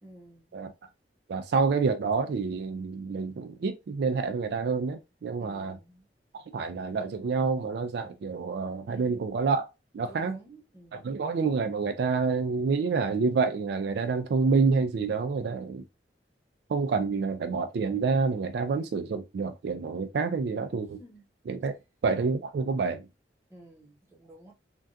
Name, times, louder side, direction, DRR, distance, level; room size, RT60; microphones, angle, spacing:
voice 1, 0.0-0.4 5.4-6.1 8.9-9.3 10.0-11.1 21.0-21.3 21.7-21.8 23.5-24.5, right 1 dB, 15° right, 1.0 m, -51 dB
voice 2, 1.3-5.8 6.3-9.7 9.9-10.4 10.9-15.8 16.7-21.0 21.5-21.7 22.0-23.1, right 4 dB, 65° right, 0.3 m, -28 dB
3.4 x 2.3 x 2.5 m
head